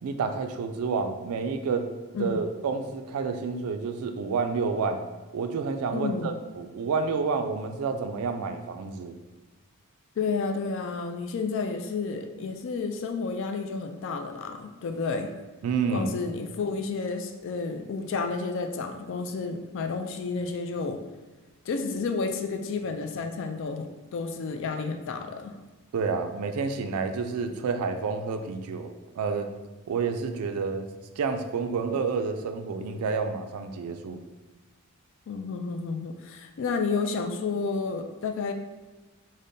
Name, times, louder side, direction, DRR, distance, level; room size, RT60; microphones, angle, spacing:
voice 1, 0.0-1.9 2.2-5.0 5.3-9.2 15.6-16.1 25.9-29.5 29.9-30.9 31.2-34.2, right 5 dB, 80° right, 7 dB, 0.3 m, -29 dB
voice 2, 5.9-6.3 10.2-15.3 15.9-21.0 21.7-25.6 35.3-38.5, left 4 dB, 55° left, 6 dB, 0.3 m, -31 dB
5.1 x 2.1 x 2.6 m, 1.2 s
head